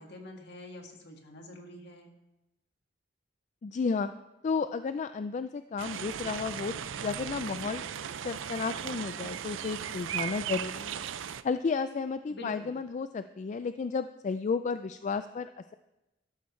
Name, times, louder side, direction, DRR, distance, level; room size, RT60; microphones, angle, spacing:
voice 1, 0.0-2.1 12.3-12.8, left 1 dB, 60° left, 2 dB, 1.8 m, -46 dB
voice 2, 3.6-4.1 4.4-7.8 8.2-11.0 11.4-15.7, left 5 dB, 40° left, 10 dB, 0.3 m, -33 dB
sound 1, 5.8-11.4, right 8 dB, 80° right, 0.5 m, -37 dB
13.0 x 12.5 x 3.2 m, 0.98 s
head